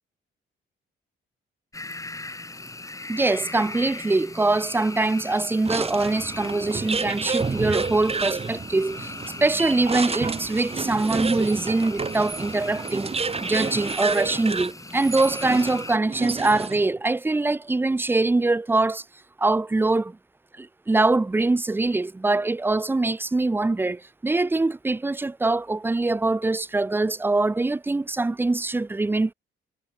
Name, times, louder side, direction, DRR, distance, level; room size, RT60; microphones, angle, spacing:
sound 1, 1.7-16.0, left 2 dB, 15° left, 2.1 m, -39 dB
voice 1, 3.1-9.1 9.4-19.0 19.4-20.2 20.6-29.3, right 2 dB, 10° right, 0.4 m, -23 dB
sound 2, 5.6-16.9, right 4 dB, 30° right, 3.5 m, -30 dB
cardioid pair, 90°, 20 cm